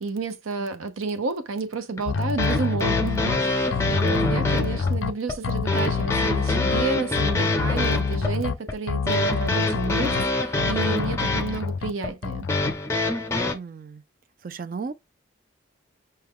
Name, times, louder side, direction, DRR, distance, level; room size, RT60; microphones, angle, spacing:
voice 1, 0.0-12.5, right 4 dB, 85° right, 0.7 m, -31 dB
sound 1, 2.0-13.5, left 2 dB, 15° left, 0.6 m, -26 dB
sound 2, 2.1-3.4 3.7-5.1 5.4-6.8 7.2-8.5 8.9-10.3 10.6-11.9 12.2-12.7, left 5 dB, 70° left, 0.4 m, -27 dB
voice 2, 4.1-4.7 13.4-14.0 14.4-14.9, right 5 dB, 45° right, 0.4 m, -37 dB
5.5 x 2.2 x 3.6 m
head